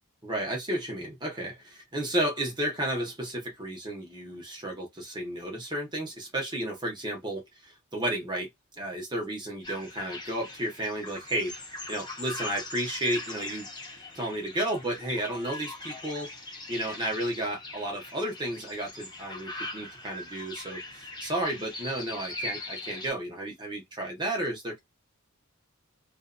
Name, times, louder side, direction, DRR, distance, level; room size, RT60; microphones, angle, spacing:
voice 1, 0.2-8.5 8.8-11.5 11.9-13.7 14.1-16.3 16.7-24.8, right 1 dB, 20° right, 1.0 m, -32 dB
sound 1, 9.6-23.1, left 2 dB, 20° left, 0.8 m, -41 dB
2.6 x 2.5 x 2.2 m
head